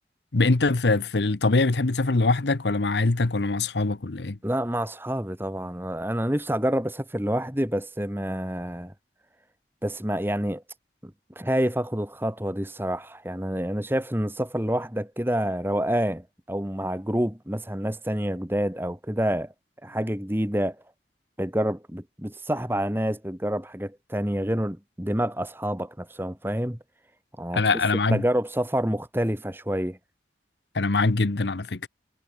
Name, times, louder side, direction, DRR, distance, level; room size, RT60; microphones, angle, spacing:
voice 1, 0.3-4.4 27.5-28.2 30.7-31.9, left 3 dB, 80° left, 1.0 m, -23 dB
voice 2, 4.4-8.9 9.8-10.6 11.0-19.5 19.8-20.8 21.4-26.8 27.4-27.8 28.1-30.0, equal, 10° right, 2.1 m, -28 dB
head